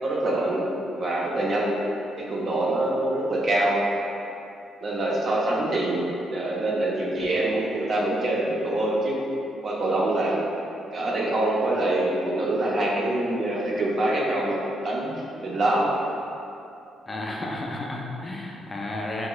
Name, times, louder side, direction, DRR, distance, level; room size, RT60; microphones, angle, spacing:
voice 1, 0.0-1.8 2.2-3.8 4.8-9.2 9.6-10.4 10.9-15.1 15.4-15.9, right 1 dB, 45° right, -4 dB, 0.6 m, -25 dB
voice 2, 17.1-19.3, left 2 dB, 25° left, -1 dB, 0.4 m, -32 dB
3.6 x 2.8 x 2.4 m, 2.7 s
cardioid pair, 90°, 0 cm